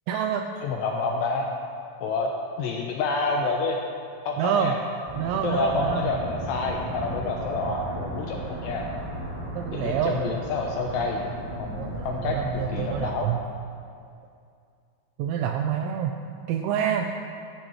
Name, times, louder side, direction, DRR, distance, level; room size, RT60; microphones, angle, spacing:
voice 1, 0.1-0.6 4.4-4.7 5.2-6.1 9.6-10.2 11.8-13.4 15.2-16.2 16.5-17.1, right 9 dB, 85° right, 4 dB, 2.6 m, -27 dB
voice 2, 0.6-1.5 2.0-2.3 2.6-3.8 4.3-4.8 5.4-8.9 9.7-11.3 11.6-13.3, left 3 dB, 80° left, 0 dB, 2.6 m, -28 dB
sound 1, 5.1-13.1, right 1 dB, 10° right, 2.8 m, -35 dB
17.0 x 13.0 x 3.2 m, 2.4 s
omnidirectional pair, 5.8 m